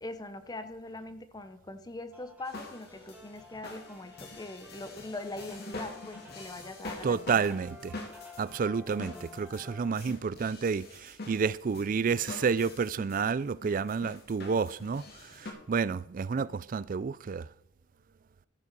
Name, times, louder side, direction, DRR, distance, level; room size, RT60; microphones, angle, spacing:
voice 1, 0.0-7.6 9.1-9.4 16.3-16.6, left 2 dB, 20° left, 0.7 m, -42 dB
sound 1, 2.1-9.9, left 2 dB, 10° right, 2.2 m, -52 dB
sound 2, 2.4-15.5, left 2 dB, 55° left, 2.6 m, -45 dB
voice 2, 7.0-7.9 8.4-17.5, right 5 dB, 45° right, 0.4 m, -30 dB
14.5 x 5.5 x 6.8 m
head